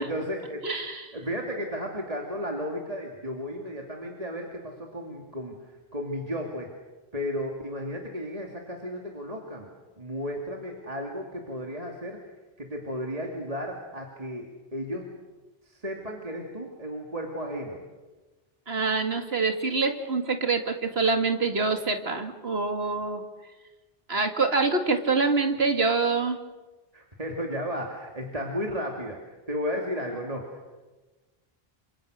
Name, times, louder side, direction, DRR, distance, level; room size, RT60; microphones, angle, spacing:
voice 1, 0.0-0.7 1.1-6.7 7.1-9.7 10.0-12.2 12.6-14.5 14.7-15.1 15.6-17.8 26.9-30.7, equal, 35° right, 0 dB, 2.9 m, -34 dB
voice 2, 0.6-1.2 18.7-23.2 24.1-26.4, right 4 dB, 80° right, 6 dB, 2.5 m, -25 dB
29.0 x 26.5 x 6.5 m, 1.2 s
omnidirectional pair, 1.0 m